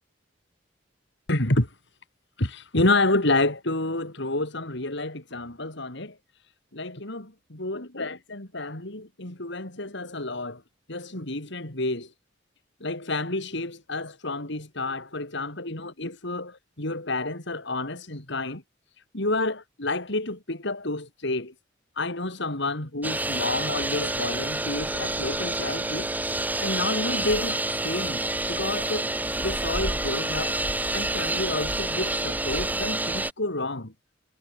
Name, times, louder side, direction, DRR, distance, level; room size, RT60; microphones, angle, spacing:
voice 1, 1.3-1.7 2.4-6.2 6.7-10.6 10.9-12.1 12.8-18.6 19.1-21.5 22.0-26.1 26.6-29.1 29.4-30.6 30.9-33.9, left 2 dB, 65° left, 4.2 m, -29 dB
sound 1, 23.0-33.3, right 2 dB, 10° right, 1.4 m, -28 dB
head